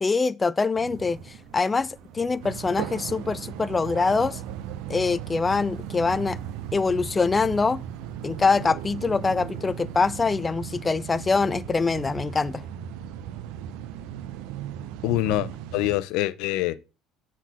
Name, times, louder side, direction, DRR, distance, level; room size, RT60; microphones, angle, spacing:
voice 1, 0.0-1.2 1.5-4.4 4.9-6.4 6.7-7.8 8.2-12.6, left 4 dB, 20° left, 0.3 m, -24 dB
sound 1, 0.7-10.4, right 6 dB, 65° right, 1.3 m, -46 dB
sound 2, 2.4-16.0, right 10 dB, 85° right, 0.7 m, -37 dB
voice 2, 15.0-16.8, left 16 dB, 80° left, 0.6 m, -25 dB
8.3 x 4.3 x 5.8 m
cardioid pair, 135°, 0 cm